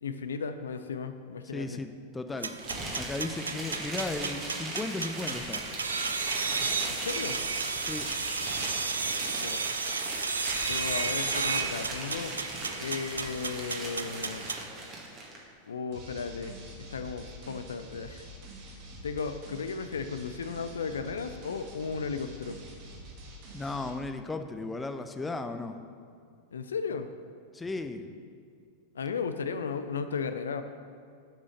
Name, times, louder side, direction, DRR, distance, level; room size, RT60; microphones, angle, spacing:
voice 1, 0.0-1.8 6.9-7.4 9.3-9.6 10.6-12.4 12.8-14.5 15.7-18.3 19.0-22.6 26.5-27.1 28.9-30.6, left 5 dB, 70° left, 9 dB, 0.4 m, -35 dB
voice 2, 1.5-2.6 3.0-5.6 7.8-8.0 23.5-25.8 27.5-28.1, left 3 dB, 10° left, 8 dB, 0.5 m, -35 dB
sound 1, 2.4-14.6, right 4 dB, 75° right, 0.4 m, -33 dB
sound 2, 2.6-15.4, right 2 dB, 30° right, 1.9 m, -38 dB
sound 3, 15.9-23.9, right 1 dB, 45° right, 1.7 m, -47 dB
7.3 x 6.2 x 6.5 m, 2.3 s
figure-of-eight pair, 90°, 0 cm